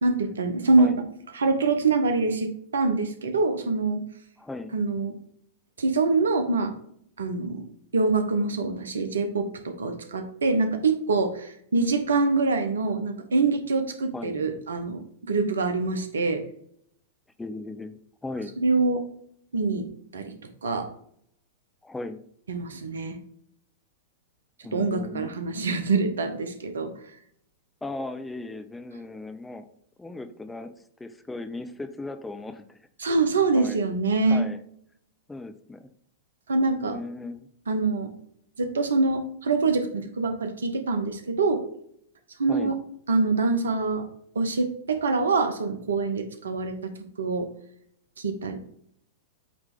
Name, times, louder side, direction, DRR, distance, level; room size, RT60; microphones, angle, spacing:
voice 1, 0.0-0.9 1.3-4.0 4.7-5.1 5.8-6.7 7.2-7.7 7.9-16.4 18.6-19.0 19.5-19.9 20.1-20.3 20.6-20.9 22.5-23.2 24.7-26.9 33.0-34.4 36.5-37.0 37.7-38.1 38.6-41.6 42.4-42.7 43.1-44.1 44.3-46.9 47.2-47.5 48.2-48.6, right 3 dB, 75° right, 8 dB, 0.9 m, -25 dB
voice 2, 4.4-4.7 14.1-14.4 17.4-18.0 18.2-18.5 21.8-22.2 24.6-25.3 27.8-29.7 30.0-30.7 31.0-32.8 33.5-33.8 34.3-34.6 35.3-35.9 36.8-37.5 42.5-42.8, left 2 dB, 10° left, 9 dB, 0.5 m, -37 dB
8.1 x 3.2 x 3.6 m, 0.67 s
figure-of-eight pair, 100°, 0 cm